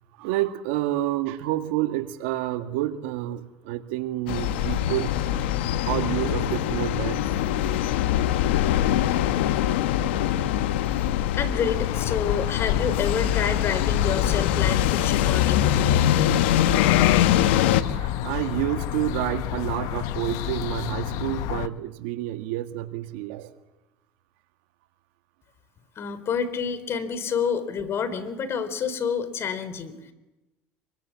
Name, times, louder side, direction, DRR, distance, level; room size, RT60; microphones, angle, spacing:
voice 1, 0.2-5.2 5.8-7.5 10.8-11.3 13.1-13.3 17.6-23.6, right 15 dB, 80° right, 8 dB, 1.7 m, -29 dB
sound 1, 4.3-17.8, left 11 dB, 90° left, 1.3 m, -23 dB
voice 2, 11.1-16.0 26.0-30.1, left 6 dB, 45° left, 13 dB, 4.0 m, -28 dB
sound 2, 11.6-21.7, left 14 dB, 75° left, 1.0 m, -30 dB
26.0 x 24.0 x 7.5 m, 1.0 s
supercardioid pair, 90°, 6 cm